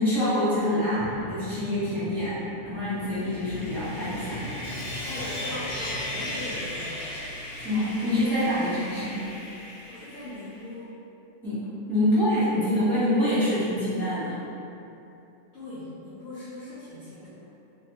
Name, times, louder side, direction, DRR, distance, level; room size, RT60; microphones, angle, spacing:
voice 1, 0.0-2.4 2.6-4.4 7.6-9.2 11.4-14.4, left 1 dB, ahead, -15 dB, 1.1 m, -26 dB
sound 1, 0.9-7.1, equal, 70° right, 0.5 m, -41 dB
Sawing, 3.1-10.6, left 1 dB, 90° left, 1.2 m, -37 dB
voice 2, 5.0-6.9 9.9-10.9 15.5-17.5, left 1 dB, 55° left, -14 dB, 0.9 m, -39 dB
2.6 x 2.5 x 3.0 m, 2.9 s
omnidirectional pair, 1.5 m